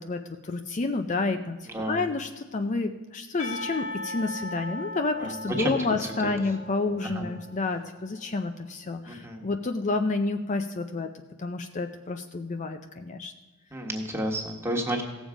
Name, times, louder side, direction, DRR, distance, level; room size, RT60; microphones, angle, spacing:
voice 1, 0.1-11.1 11.4-13.3, left 3 dB, 35° left, 6 dB, 0.5 m, -30 dB
voice 2, 1.7-2.0 5.2-5.8 6.2-6.3 7.0-7.3 9.0-9.4 13.7-15.0, right 1 dB, 10° right, 0 dB, 1.5 m, -31 dB
Percussion, 3.4-8.2, left 1 dB, 85° left, 2.4 m, -38 dB
17.0 x 7.2 x 5.0 m, 1.3 s
head